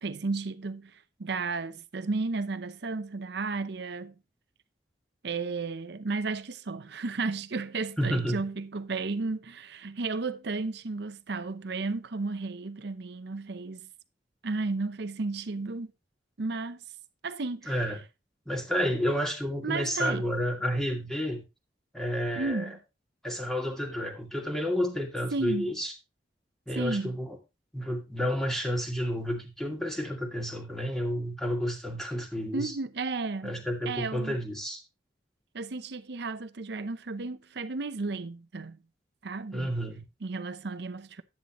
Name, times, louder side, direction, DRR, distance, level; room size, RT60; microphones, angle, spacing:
voice 1, 0.0-4.1 5.2-13.9 14.4-15.9 16.4-16.8 17.2-17.8 19.6-20.3 22.4-22.8 25.3-25.7 26.8-27.1 32.5-34.4 35.5-38.8 39.2-39.7 40.2-41.2, right 3 dB, 65° right, 0.7 m, -33 dB
voice 2, 8.0-8.4 17.7-18.0 18.5-21.4 21.9-22.7 23.2-25.9 26.7-27.4 27.7-32.7 33.4-34.8 39.5-40.0, equal, 5° left, 2.1 m, -30 dB
10.5 x 8.8 x 3.0 m
head